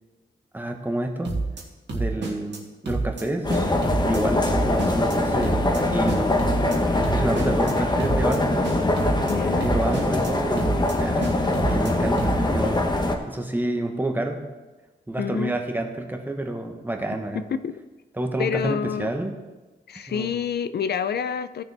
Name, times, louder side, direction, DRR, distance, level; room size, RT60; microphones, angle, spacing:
voice 1, 0.5-1.3 1.9-3.5 4.0-6.3 6.9-8.6 9.5-13.0 13.3-14.4 15.1-17.4 18.2-19.3 20.1-20.4, right 1 dB, 10° right, 4 dB, 1.1 m, -29 dB
sound 1, 1.2-1.6 1.9-2.6 2.9-3.2 3.5-4.2 4.5-5.2 5.4-5.8 6.1-6.8 7.0-7.7 8.0-8.4 8.6-9.3 9.6-10.3 10.6-10.9 11.2-11.9 12.2-12.5, right 3 dB, 75° right, 1.8 m, -28 dB
sound 2, 3.4-13.2, left 2 dB, 25° left, 1.0 m, -23 dB
voice 2, 9.3-9.7 15.2-15.5 17.3-17.8 18.4-19.1 19.9-21.6, left 7 dB, 65° left, 13 dB, 0.4 m, -28 dB
16.5 x 6.9 x 3.4 m, 1.2 s
wide cardioid pair, 125°, 18 cm